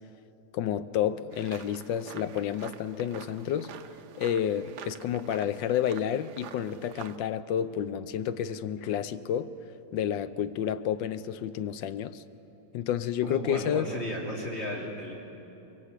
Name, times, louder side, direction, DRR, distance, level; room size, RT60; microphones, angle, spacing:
voice 1, 0.5-3.7 4.2-9.5 9.9-12.2 12.7-13.9, left 9 dB, 80° left, 12 dB, 1.4 m, -30 dB
sound 1, 1.3-7.2, right 9 dB, 70° right, 1.3 m, -47 dB
voice 2, 13.2-15.2, equal, 35° left, -3 dB, 3.4 m, -34 dB
25.0 x 22.5 x 8.3 m, 2.9 s
omnidirectional pair, 2.0 m